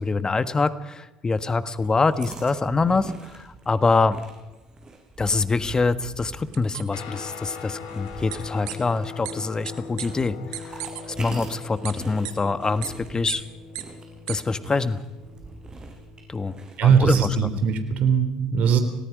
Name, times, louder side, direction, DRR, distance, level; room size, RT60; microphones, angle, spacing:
voice 1, 0.0-4.2 5.2-10.8 11.2-13.4 14.3-15.0 16.3-16.5 16.8-17.3, left 3 dB, 25° left, 12 dB, 1.4 m, -25 dB
sound 1, 1.6-17.8, right 3 dB, 25° right, 6.1 m, -44 dB
sound 2, 6.5-6.8 8.3-8.4 8.7-8.8 9.2-9.3 9.7-9.8 10.0-10.1 10.5-11.0 11.8-11.9 12.2-12.3 12.8-12.9 13.3-13.4 13.7-13.8 14.3-14.4, right 16 dB, 80° right, 1.8 m, -33 dB
Guitar, 6.9-16.5, left 5 dB, 75° left, 3.7 m, -41 dB
voice 2, 16.8-18.8, right 7 dB, 60° right, 8 dB, 3.3 m, -20 dB
27.0 x 18.5 x 5.2 m, 1.1 s
hypercardioid pair, 65°, 3 cm